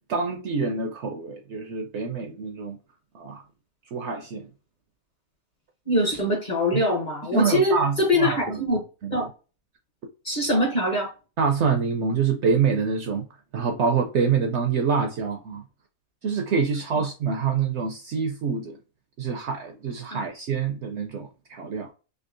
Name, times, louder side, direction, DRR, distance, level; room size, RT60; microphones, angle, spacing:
voice 1, 0.1-2.8 3.1-3.4 3.9-4.5 6.7-6.8 7.3-8.6 9.0-9.3 11.4-13.2 13.5-15.6 16.2-18.8 19.2-21.9, right 5 dB, 65° right, 0.7 m, -26 dB
voice 2, 5.9-8.8 9.1-9.3 10.2-11.1 20.1-20.2, left 1 dB, 40° left, 0.7 m, -23 dB
3.5 x 2.7 x 2.5 m
omnidirectional pair, 1.5 m